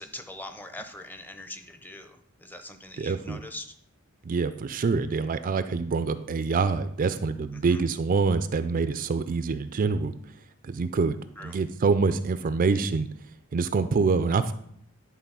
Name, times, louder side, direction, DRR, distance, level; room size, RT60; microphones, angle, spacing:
voice 1, 0.0-3.8 7.5-7.8 11.4-11.6, left 1 dB, 10° left, 7 dB, 0.6 m, -42 dB
voice 2, 3.0-3.4 4.3-10.1 10.6-11.2 11.4-13.1 13.5-14.5, right 4 dB, 40° right, 12 dB, 0.4 m, -25 dB
10.5 x 3.9 x 5.5 m, 0.68 s
head